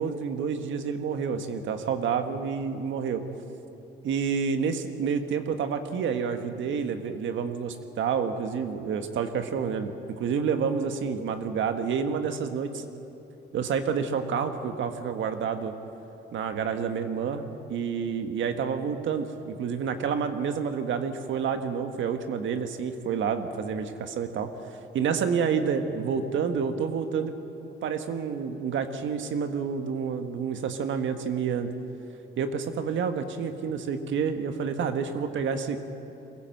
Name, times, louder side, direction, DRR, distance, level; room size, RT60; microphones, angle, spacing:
voice 1, 0.0-3.2 4.0-12.8 13.5-15.7 16.3-24.5 24.9-27.3 27.8-31.7 32.4-35.8, right 6 dB, 75° right, 7 dB, 1.5 m, -29 dB
23.0 x 15.5 x 7.8 m, 2.9 s
cardioid pair, 90°, 20 cm